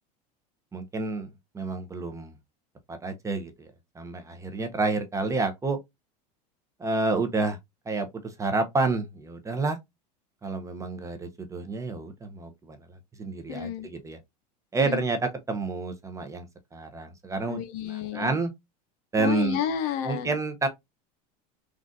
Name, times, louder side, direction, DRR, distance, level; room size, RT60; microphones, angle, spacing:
voice 1, 0.7-1.3 1.5-2.3 2.9-3.7 4.0-5.8 6.8-7.6 7.9-9.8 10.4-12.8 13.2-14.2 14.7-16.5 16.7-17.6 18.1-18.5 19.1-19.6 20.0-20.7, right 3 dB, 15° right, 0.6 m, -29 dB
voice 2, 13.5-13.9 14.8-15.0 17.5-18.3 19.2-20.4, left 9 dB, 65° left, 0.7 m, -31 dB
3.8 x 2.4 x 2.5 m
supercardioid pair, 120°, 20 cm